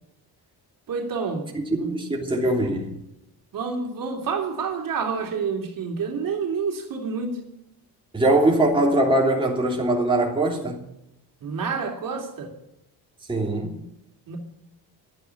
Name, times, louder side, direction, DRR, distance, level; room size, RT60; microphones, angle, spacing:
voice 1, 0.9-1.5 1.7-2.2 3.5-7.4 11.4-12.5 14.3-14.4, right 5 dB, 60° right, 3.2 m, -28 dB
voice 2, 1.5-2.9 8.1-10.8 13.3-13.8, right 1 dB, 15° right, 3.1 m, -22 dB
12.5 x 9.2 x 9.9 m
cardioid pair, 130°, 39 cm